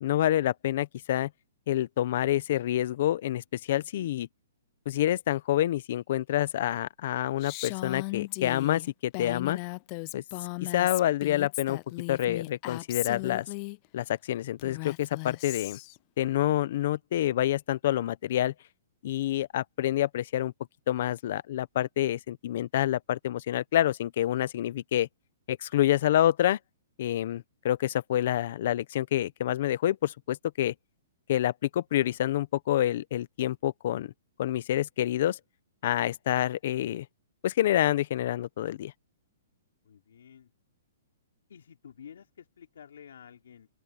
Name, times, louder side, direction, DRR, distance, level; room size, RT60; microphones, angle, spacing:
voice 1, 0.0-1.3 1.7-4.3 4.9-9.6 10.1-10.2 10.6-11.8 12.1-13.5 13.9-15.8 16.2-18.5 19.0-20.5 20.9-25.1 25.5-26.6 27.0-30.7 31.3-34.1 34.4-35.4 35.8-37.1 37.4-38.9, left 12 dB, 50° left, 0.8 m, -27 dB
Female speech woman speaking, 7.4-13.8 14.6-16.0, left 29 dB, 30° left, 0.3 m, -37 dB
voice 2, 39.8-40.5 41.5-43.7, left 8 dB, 75° left, 3.7 m, -50 dB
open air
hypercardioid pair, 165°, 0 cm